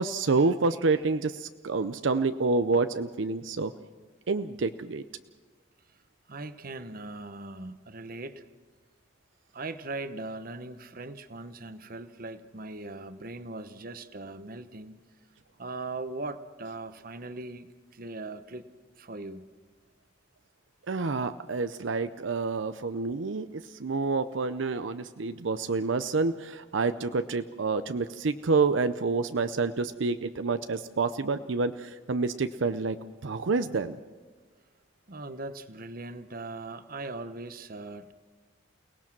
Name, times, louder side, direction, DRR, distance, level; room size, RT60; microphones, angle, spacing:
voice 1, 0.0-3.7 4.3-5.0 20.9-34.0, right 4 dB, 80° right, 10 dB, 0.6 m, -28 dB
voice 2, 6.3-8.4 9.5-15.0 15.6-18.7 19.0-19.5 35.1-38.1, right 2 dB, 50° right, 11 dB, 1.0 m, -39 dB
29.5 x 18.0 x 6.0 m, 1.4 s
head